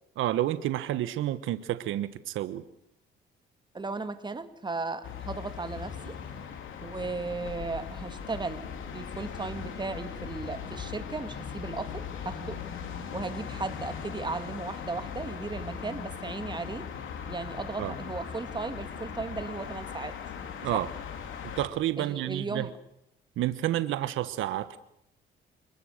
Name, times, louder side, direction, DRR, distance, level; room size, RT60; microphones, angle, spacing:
voice 1, 0.2-2.6 17.8-17.9 20.6-20.9 21.6-22.7 23.4-24.8, right 13 dB, 85° right, 13 dB, 1.3 m, -30 dB
voice 2, 3.7-6.2 6.8-12.6 13.1-16.9 17.3-20.1 20.7-20.8 22.0-22.8, right 3 dB, 20° right, 9 dB, 2.2 m, -36 dB
sound 1, 5.0-21.7, left 7 dB, 80° left, 3.5 m, -39 dB
27.5 x 20.5 x 6.6 m, 0.77 s
cardioid pair, 90°, 20 cm